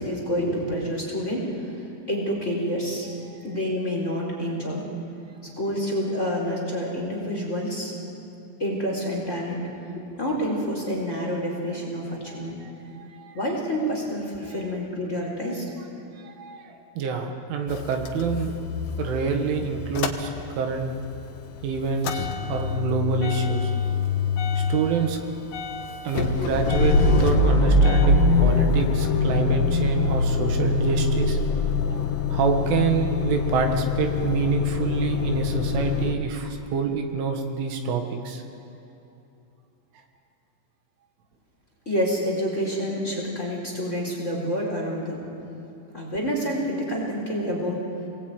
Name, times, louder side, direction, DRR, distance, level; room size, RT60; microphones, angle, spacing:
voice 1, 0.0-3.1 3.4-4.8 5.6-7.9 8.6-9.6 10.1-12.6 13.3-15.6 41.9-45.2 45.9-47.9, equal, 15° left, -1 dB, 4.0 m, -28 dB
voice 2, 12.3-13.4 16.2-18.5 19.0-20.3 20.6-20.9 21.6-23.7 24.6-25.2 26.1-31.4 31.9-32.0 32.3-38.4, right 5 dB, 75° right, 4 dB, 4.1 m, -27 dB
Motor vehicle (road) / Engine starting / Idling, 17.7-20.9 21.2-36.1, left 3 dB, 80° left, 4.0 m, -24 dB
28.0 x 20.5 x 9.2 m, 2.9 s
omnidirectional pair, 5.7 m